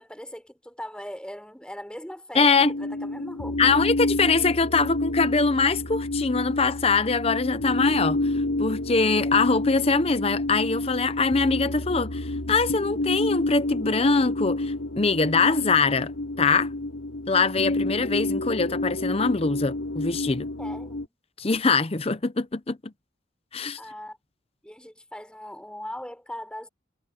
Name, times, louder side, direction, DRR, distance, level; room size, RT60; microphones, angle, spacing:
voice 1, 0.0-2.5 2.8-3.8 20.6-21.1 23.8-24.2 24.6-26.7, left 1 dB, 5° left, 5.5 m, -39 dB
voice 2, 2.3-2.7 3.6-16.1 16.4-16.7 17.3-20.5 21.4-22.9 23.5-23.8, left 4 dB, 30° left, 0.7 m, -23 dB
sound 1, 2.6-21.1, left 2 dB, 85° left, 2.8 m, -29 dB
head